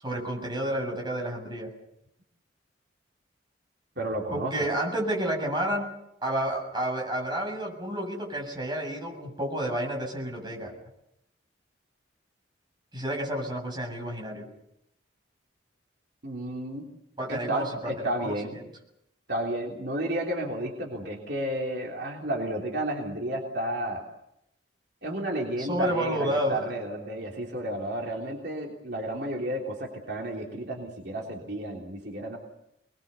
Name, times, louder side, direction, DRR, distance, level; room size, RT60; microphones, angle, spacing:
voice 1, 0.0-1.7 4.3-5.9 6.2-10.7 12.9-14.5 17.2-18.6 25.6-26.7, right 1 dB, 25° right, 0 dB, 7.4 m, -30 dB
voice 2, 4.0-4.5 16.2-16.8 17.3-18.6 19.3-24.0 25.0-32.4, right 1 dB, 55° right, -1 dB, 3.4 m, -32 dB
27.0 x 21.5 x 7.0 m, 0.82 s
head